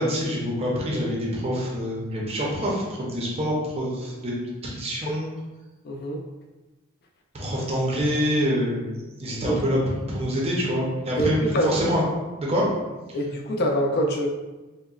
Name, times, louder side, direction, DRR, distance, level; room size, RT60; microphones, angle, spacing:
voice 1, 0.0-5.3 7.3-8.9 9.2-12.0 12.4-12.7, equal, 30° right, -4 dB, 0.6 m, -26 dB
voice 2, 5.8-6.2 9.5-9.6 11.2-11.3 11.5-11.7 13.1-14.3, equal, 50° left, 2 dB, 0.4 m, -24 dB
3.8 x 2.1 x 2.3 m, 1.2 s
head